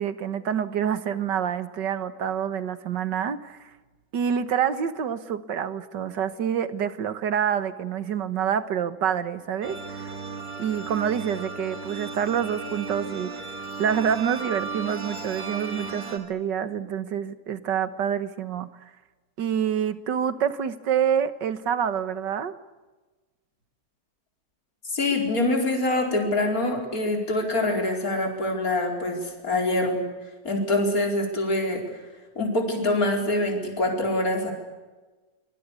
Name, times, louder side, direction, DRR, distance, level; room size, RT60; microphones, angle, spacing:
voice 1, 0.0-3.7 4.1-10.1 10.6-13.3 13.8-18.7 19.4-22.6, right 8 dB, 70° right, 12 dB, 2.0 m, -27 dB
sound 1, 9.6-16.2, right 4 dB, 30° right, 3.7 m, -35 dB
voice 2, 24.9-30.0 30.5-31.8 32.4-34.5, left 2 dB, 50° left, 2 dB, 5.1 m, -25 dB
25.0 x 23.5 x 8.4 m, 1.2 s
omnidirectional pair, 2.0 m